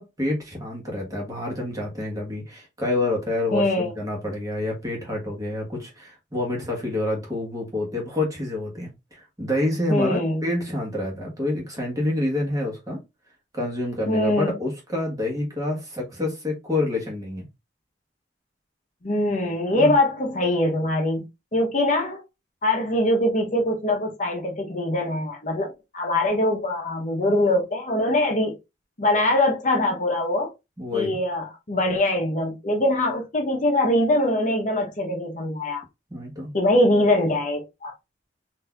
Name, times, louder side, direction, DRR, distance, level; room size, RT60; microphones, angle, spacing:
voice 1, 0.0-13.0 13.5-17.5 19.7-19.9 30.8-31.2 36.1-36.5, left 1 dB, 20° right, 1.1 m, -28 dB
voice 2, 3.5-3.9 9.9-10.5 14.1-14.5 19.0-21.2 21.5-22.2 22.6-28.5 29.0-30.5 30.9-35.8 36.5-37.9, left 1 dB, 40° left, 0.8 m, -23 dB
4.0 x 2.6 x 2.3 m
head